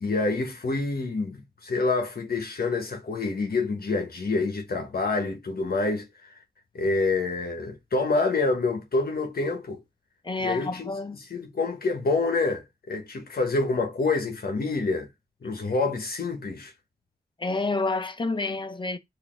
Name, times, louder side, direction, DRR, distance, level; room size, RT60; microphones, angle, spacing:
voice 1, 0.0-6.3 6.7-9.8 10.4-10.9 11.3-15.1 15.4-16.7, left 3 dB, 60° left, 1.0 m, -27 dB
voice 2, 10.2-11.2 17.4-19.0, left 3 dB, 30° left, 0.7 m, -29 dB
3.7 x 2.6 x 3.1 m
cardioid pair, 40°, 17 cm